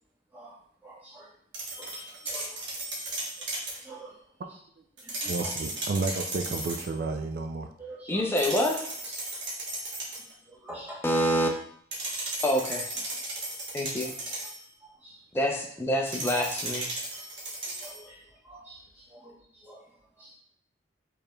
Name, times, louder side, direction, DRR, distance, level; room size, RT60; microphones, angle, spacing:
voice 1, 0.8-1.3 1.8-2.6 3.0-3.5 3.8-4.2 5.0-5.5 7.8-8.3 9.0-9.2 10.2-11.0 14.0-14.5 15.0-15.2 17.6-19.8 20.2-20.3, right 2 dB, 10° right, -6 dB, 1.0 m, -46 dB
sound 1, 1.5-3.8 5.0-6.9 8.4-10.3 11.9-14.6 16.1-18.0, right 2 dB, 80° right, 1.1 m, -35 dB
voice 2, 4.4-4.8 5.2-7.7, right 3 dB, 55° right, 5 dB, 0.3 m, -32 dB
voice 3, 8.1-8.9 11.0-11.5 12.4-12.8 13.7-14.1 15.3-16.9, equal, 15° left, 0 dB, 0.5 m, -26 dB
4.8 x 3.1 x 2.2 m, 0.64 s
head